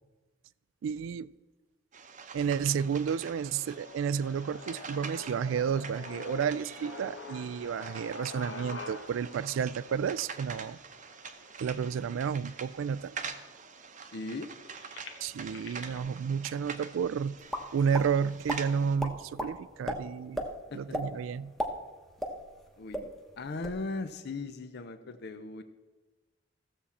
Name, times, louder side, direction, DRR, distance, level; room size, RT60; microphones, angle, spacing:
voice 1, 0.8-1.3 2.3-10.8 11.6-13.2 15.2-17.4 17.7-20.5 20.7-21.5, right 7 dB, 90° right, 0.3 m, -31 dB
sound 1, 1.9-19.0, right 6 dB, 40° right, 0.7 m, -45 dB
sound 2, 2.5-12.5 13.2-13.3 13.5-16.0, left 3 dB, 85° left, 1.3 m, -47 dB
voice 2, 14.0-14.5 20.7-20.8 22.8-23.1 23.4-25.6, left 3 dB, 60° left, 0.6 m, -38 dB
sound 3, 17.5-18.1 18.5-18.6 19.0-19.5 19.9-20.0 20.3-20.5 20.9-21.1 21.4-22.7 22.9-23.1 23.4-23.8, equal, ahead, 0.9 m, -33 dB
15.0 x 7.1 x 4.2 m
head